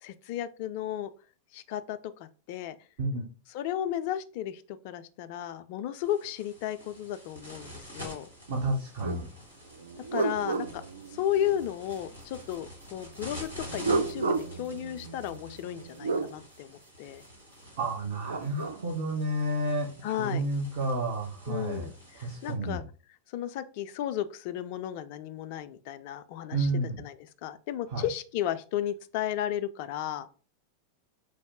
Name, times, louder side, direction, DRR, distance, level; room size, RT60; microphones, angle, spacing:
voice 1, 0.0-1.1 1.5-2.7 3.5-8.3 10.1-10.8 11.1-17.2 20.0-20.4 21.5-21.9 22.2-22.8 23.3-26.7 27.0-27.2 27.4-30.3, left 11 dB, 45° left, 0.3 m, -34 dB
sound 1, 6.0-22.5, equal, 85° right, 1.7 m, -48 dB
voice 2, 8.5-9.3 17.8-21.9 22.1-22.8 26.5-27.0 27.9-28.0, right 2 dB, 50° right, 0.9 m, -31 dB
sound 2, 9.0-9.2 9.7-11.7 13.6-16.3 18.0-18.8, right 4 dB, 65° right, 0.4 m, -33 dB
4.7 x 2.1 x 3.6 m
figure-of-eight pair, 90°, 0 cm